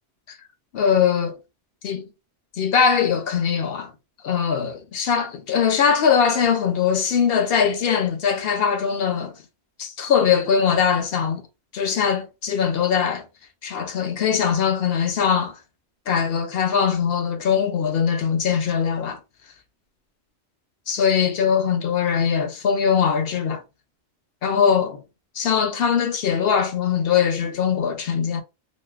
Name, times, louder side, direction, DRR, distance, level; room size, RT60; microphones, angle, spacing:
voice 1, 0.7-1.4 1.8-2.1 2.6-3.9 4.2-9.3 9.8-11.4 11.7-13.3 13.6-15.6 16.1-19.2 20.9-23.6 24.4-25.0 25.3-28.4, left 7 dB, 65° left, 0.7 m, -21 dB
3.1 x 2.6 x 2.3 m
omnidirectional pair, 1.2 m